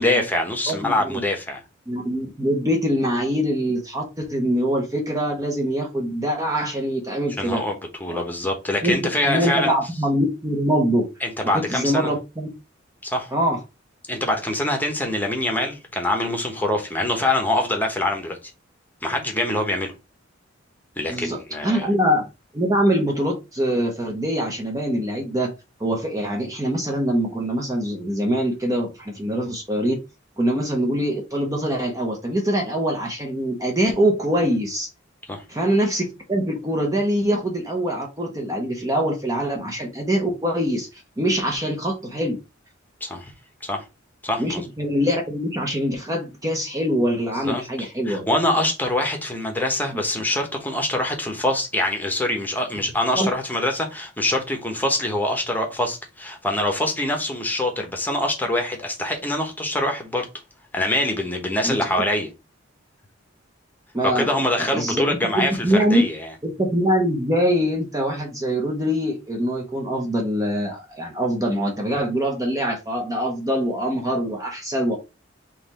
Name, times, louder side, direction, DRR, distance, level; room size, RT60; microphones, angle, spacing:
voice 1, 0.0-1.6 7.4-9.7 11.2-12.1 13.0-13.3 14.1-18.4 19.0-19.9 21.0-21.9 35.3-35.4 43.0-43.3 43.6-43.8 44.2-44.6 47.4-60.3 60.7-62.3 64.0-66.3, left 1 dB, 10° left, 1.0 m, -24 dB
voice 2, 0.7-1.2 1.9-7.6 8.1-8.2 8.8-11.1 11.5-12.5 13.3-13.6 21.1-21.4 21.6-22.2 22.5-25.5 25.8-30.0 30.4-34.9 35.5-42.4 44.4-48.2 53.1-53.3 61.6-62.0 63.9-64.3 64.6-66.0 66.4-75.0, equal, 15° right, 0.8 m, -23 dB
4.0 x 3.0 x 4.1 m
head